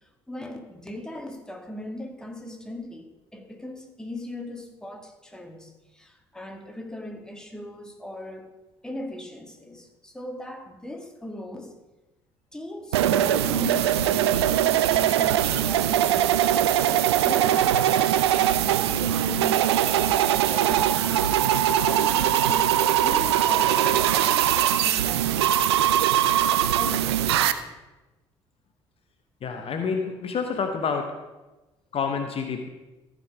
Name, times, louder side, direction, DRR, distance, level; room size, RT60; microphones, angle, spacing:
voice 1, 0.0-8.5 8.8-11.7 12.5-16.8 17.2-26.3 26.7-27.3, left 1 dB, 5° left, 3 dB, 1.8 m, -39 dB
sound 1, 12.9-27.5, right 11 dB, 80° right, 0.5 m, -21 dB
voice 2, 29.4-31.1 31.9-32.7, left 5 dB, 45° left, 5 dB, 1.0 m, -28 dB
14.5 x 5.2 x 4.9 m, 1.1 s
hypercardioid pair, 55°, 14 cm